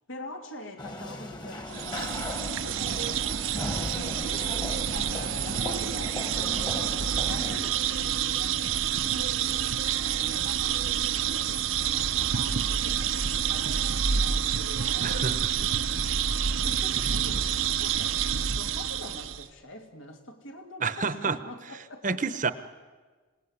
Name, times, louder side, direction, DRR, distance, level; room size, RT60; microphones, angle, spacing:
voice 1, 0.1-3.8 4.2-9.8 10.2-16.4 16.6-22.4, left 1 dB, 80° left, 3 dB, 2.9 m, -44 dB
sound 1, 0.8-7.6, left 1 dB, 20° left, 1.5 m, -37 dB
sound 2, 1.7-19.5, right 8 dB, 80° right, 0.8 m, -28 dB
voice 2, 15.0-15.5 20.8-21.4 22.0-22.5, right 4 dB, 40° right, 12 dB, 0.9 m, -28 dB
26.5 x 18.0 x 9.8 m, 1.4 s
head